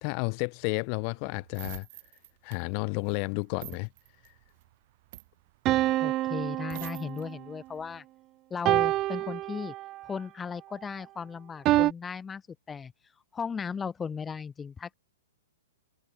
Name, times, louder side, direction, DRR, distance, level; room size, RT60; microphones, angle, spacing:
voice 1, 0.0-1.9 2.4-3.9, left 40 dB or more, 40° left, 1.1 m, -31 dB
sound 1, 0.6-7.2 7.7-8.0, right 21 dB, 50° right, 5.4 m, -48 dB
sound 2, 5.7-7.4 8.7-10.1 11.7-11.9, right 16 dB, 30° right, 0.5 m, -27 dB
voice 2, 6.0-8.0 8.5-9.7 10.0-12.4 12.7-12.9 13.3-14.9, left 6 dB, 15° left, 1.1 m, -36 dB
hypercardioid pair, 125°, 0 cm